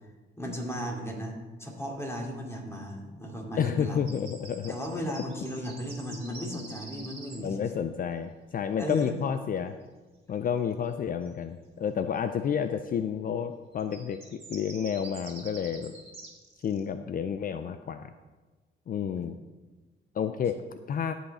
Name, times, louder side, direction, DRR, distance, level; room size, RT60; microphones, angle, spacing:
voice 1, 0.4-4.0 4.7-7.6 8.8-9.0 19.2-19.3, equal, 15° left, -1 dB, 2.5 m, -35 dB
voice 2, 3.6-4.7 7.4-9.8 10.3-15.9 16.6-18.1 18.9-19.4 20.1-20.5 20.9-21.1, left 7 dB, 45° left, 9 dB, 0.5 m, -30 dB
sound 1, 4.0-7.4 11.2-11.3 13.7-16.8, right 3 dB, 30° right, 2.5 m, -46 dB
16.0 x 5.6 x 4.2 m, 1.3 s
cardioid pair, 90°, 20 cm